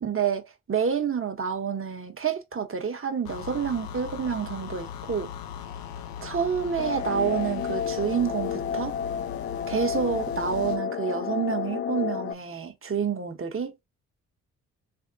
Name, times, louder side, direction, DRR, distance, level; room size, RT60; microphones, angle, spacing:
voice 1, 0.0-5.3 6.2-8.9 9.7-13.7, right 7 dB, 40° right, 1.2 m, -28 dB
sound 1, 3.3-10.8, left 8 dB, 85° left, 0.6 m, -39 dB
sound 2, 6.8-12.3, left 7 dB, 35° left, 0.4 m, -31 dB
3.6 x 3.4 x 2.7 m
hypercardioid pair, 45°, 35 cm